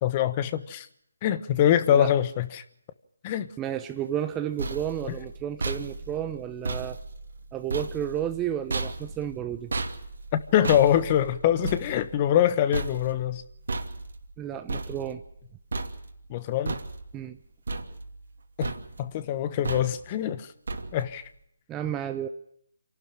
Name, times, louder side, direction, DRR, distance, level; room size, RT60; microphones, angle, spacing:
voice 1, 0.0-0.9 1.2-2.6 3.2-3.5 5.1-5.2 10.5-13.4 16.3-16.7 18.6-18.7 19.0-20.5 20.9-21.2, left 10 dB, 25° left, 13 dB, 1.2 m, -24 dB
voice 2, 3.6-7.0 7.5-9.7 14.4-15.2 17.1-17.4 21.7-22.3, right 10 dB, 15° right, 8 dB, 0.8 m, -32 dB
sound 1, 4.2-15.4 15.7-16.3 16.7-17.3 17.7-18.4 18.6-19.1 19.6-20.2 20.7-21.2, right 3 dB, 70° right, 2.7 m, -35 dB
27.0 x 12.0 x 9.9 m, 0.74 s
hypercardioid pair, 160°, 0 cm